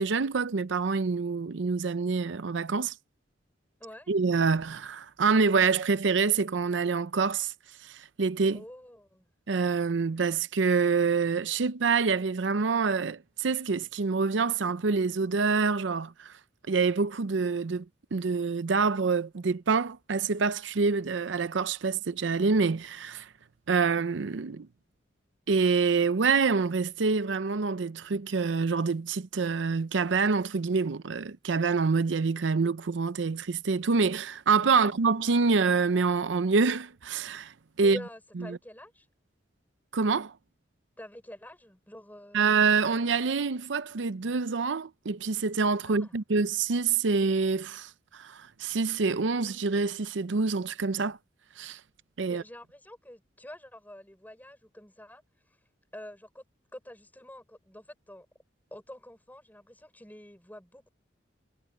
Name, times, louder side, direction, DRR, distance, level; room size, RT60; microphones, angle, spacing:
voice 1, 0.0-2.9 4.1-7.5 7.8-8.6 9.5-16.4 16.7-17.9 18.1-23.3 23.7-24.7 25.5-38.0 38.5-38.6 39.9-40.4 42.3-51.2 51.6-51.8 52.2-52.4, right 4 dB, 80° right, 0.6 m, -26 dB
voice 2, 3.8-4.1 8.5-9.3 34.8-34.9 37.8-39.1 41.0-42.5 45.8-46.2 52.3-55.2 55.9-56.4 56.7-58.3 58.7-60.9, left 1 dB, 10° left, 5.9 m, -47 dB
head